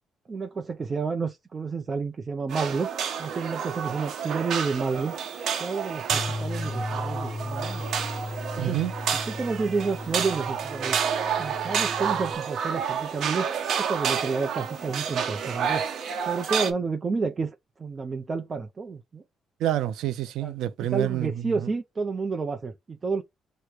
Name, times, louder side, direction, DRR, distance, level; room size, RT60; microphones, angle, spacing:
voice 1, 0.3-2.9 3.2-5.2 5.6-7.9 8.6-8.8 9.3-11.0 11.4-13.5 13.8-15.9 16.2-19.2 20.4-20.5 20.9-23.2, right 4 dB, 35° right, 0.5 m, -30 dB
sound 1, 2.5-16.7, right 7 dB, 70° right, 0.9 m, -30 dB
Bass guitar, 6.1-12.4, left 2 dB, 25° left, 0.7 m, -36 dB
voice 2, 8.6-8.9 19.6-21.7, right 13 dB, 85° right, 0.5 m, -28 dB
4.6 x 2.2 x 4.5 m
cardioid pair, 90°, 0 cm